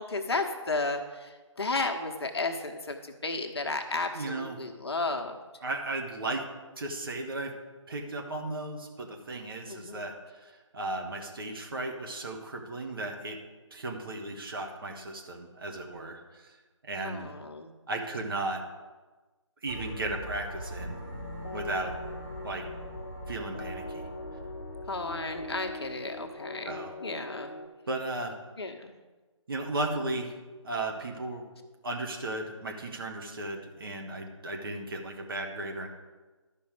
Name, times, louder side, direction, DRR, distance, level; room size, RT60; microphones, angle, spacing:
voice 1, 0.0-5.4 9.7-10.1 17.0-17.7 24.9-27.5 28.6-28.9, left 3 dB, 50° left, 5 dB, 1.0 m, -33 dB
voice 2, 4.1-4.6 5.6-6.4 6.8-7.5 7.9-10.1 10.4-13.4 13.7-16.2 16.8-17.3 17.9-18.6 19.6-21.0 21.5-21.9 22.4-22.6 23.3-24.0 26.6-26.9 27.9-28.3 29.5-30.3 30.6-31.4 31.8-35.9, right 2 dB, 45° right, 2 dB, 1.3 m, -35 dB
sound 1, 19.7-26.3, right 1 dB, 5° right, 1.3 m, -42 dB
sound 2, 20.8-27.7, left 2 dB, 30° left, 0.6 m, -42 dB
12.5 x 5.3 x 4.9 m, 1.3 s
figure-of-eight pair, 155°, 17 cm